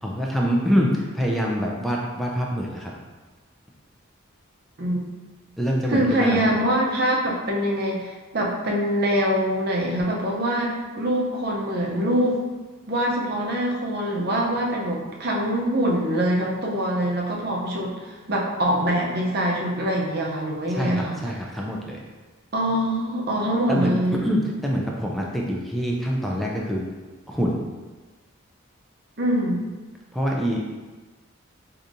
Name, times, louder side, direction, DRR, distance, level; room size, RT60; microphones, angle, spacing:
voice 1, 0.0-2.9 5.6-6.6 20.7-22.0 23.7-26.9 27.3-27.6 30.1-30.6, equal, ahead, -2 dB, 0.4 m, -25 dB
voice 2, 5.9-12.4 12.9-21.2 22.5-24.2 29.2-29.7, equal, 50° right, -2 dB, 0.6 m, -24 dB
4.8 x 2.7 x 2.6 m, 1.3 s
head